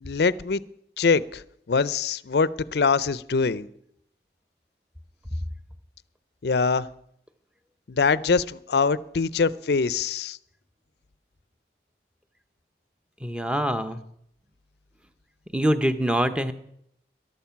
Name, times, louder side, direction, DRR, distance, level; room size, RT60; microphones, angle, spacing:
voice 1, 0.0-0.6 1.0-1.4 1.7-3.7 6.4-6.9 7.9-10.4, left 4 dB, 65° left, 0.5 m, -23 dB
voice 2, 13.2-14.0 15.5-16.5, equal, 5° right, 0.7 m, -24 dB
14.5 x 12.0 x 5.8 m
head